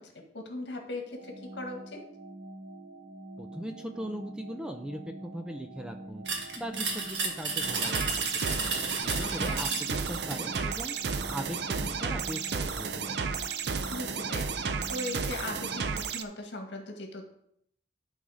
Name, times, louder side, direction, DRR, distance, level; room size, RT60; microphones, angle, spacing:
voice 1, 0.0-2.0 9.2-9.6 13.9-17.2, left 2 dB, 75° left, 3 dB, 1.7 m, -39 dB
sound 1, 1.1-16.0, right 1 dB, 45° right, 1.2 m, -46 dB
voice 2, 3.4-6.3 6.6-8.7 9.0-11.0 11.3-13.2, equal, 5° right, 6 dB, 0.5 m, -39 dB
sound 2, 6.3-10.7, right 4 dB, 85° right, 1.6 m, -33 dB
sound 3, 7.6-16.2, right 5 dB, 65° right, 0.6 m, -33 dB
11.5 x 4.1 x 5.0 m, 0.72 s
head